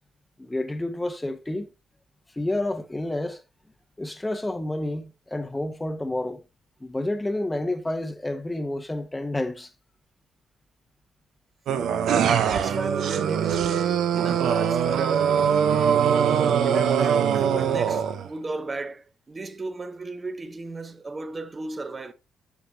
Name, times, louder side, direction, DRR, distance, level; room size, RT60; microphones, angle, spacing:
voice 1, 0.4-1.7 2.3-3.4 4.0-6.4 6.8-9.7, left 1 dB, 15° left, 0.9 m, -29 dB
sound 1, 11.7-18.3, right 8 dB, 75° right, 0.9 m, -22 dB
voice 2, 12.2-15.4 16.6-22.1, right 3 dB, 25° right, 0.9 m, -34 dB
8.4 x 6.1 x 2.8 m
cardioid pair, 90°, 0 cm